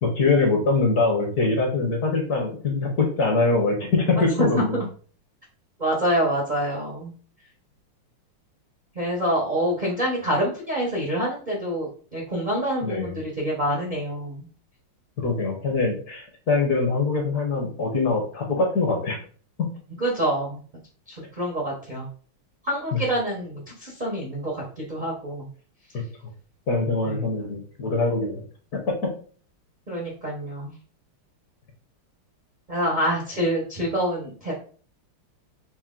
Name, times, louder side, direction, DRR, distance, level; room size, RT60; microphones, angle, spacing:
voice 1, 0.0-4.8 12.8-13.2 15.2-19.2 22.9-23.0 25.9-26.0 26.7-28.4 28.7-29.1, left 3 dB, 60° left, 1 dB, 1.1 m, -23 dB
voice 2, 5.8-7.1 9.0-14.4 20.0-20.6 21.4-22.1 22.7-25.5 29.9-30.7 32.7-34.5, equal, 85° right, -3 dB, 0.4 m, -26 dB
4.3 x 2.1 x 3.6 m, 0.43 s
omnidirectional pair, 2.4 m